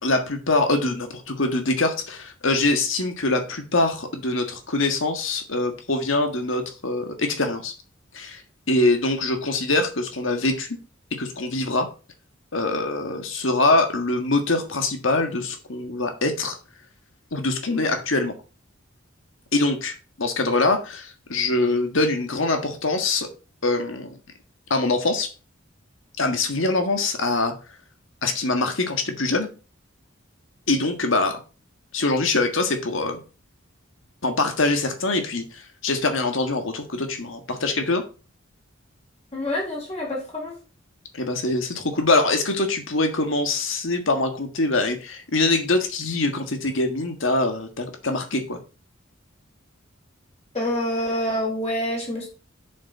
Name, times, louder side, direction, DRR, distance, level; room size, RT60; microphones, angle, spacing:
voice 1, 0.0-7.7 8.1-8.4 8.7-10.7 11.1-11.9 12.5-16.6 17.3-18.3 19.5-23.3 23.6-24.2 24.7-25.3 26.2-27.5 28.2-29.5 30.7-31.4 31.9-33.2 34.2-38.0 41.1-48.6, left 2 dB, 70° left, 6 dB, 1.7 m, -23 dB
voice 2, 39.3-40.6 50.5-52.3, left 1 dB, 35° left, -3 dB, 4.2 m, -27 dB
7.5 x 7.0 x 4.2 m, 0.35 s
head